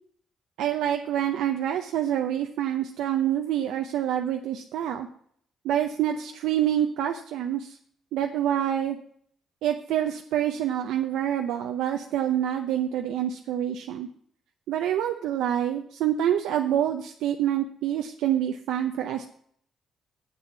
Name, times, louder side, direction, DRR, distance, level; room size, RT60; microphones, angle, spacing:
voice 1, 0.6-5.1 5.6-7.8 8.1-9.0 9.6-14.1 14.7-19.2, right 10 dB, 90° right, 4 dB, 0.7 m, -27 dB
7.8 x 7.5 x 7.0 m, 0.62 s
cardioid pair, 90°, 0 cm